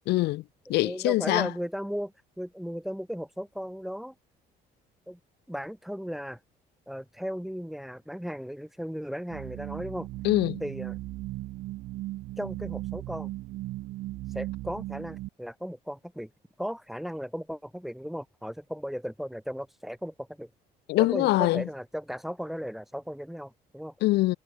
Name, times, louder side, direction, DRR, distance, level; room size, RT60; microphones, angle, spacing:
voice 1, 0.1-0.4 0.7-1.5 10.2-10.6 20.9-21.6 24.0-24.4, left 18 dB, 85° left, 1.7 m, -23 dB
voice 2, 0.8-4.1 5.1-5.2 5.5-6.4 6.9-10.1 10.6-11.0 12.4-13.3 14.3-16.3 16.6-20.5 21.0-23.9, equal, ahead, 2.9 m, -36 dB
sound 1, 9.3-15.3, right 17 dB, 85° right, 2.4 m, -37 dB
cardioid pair, 110°, 17 cm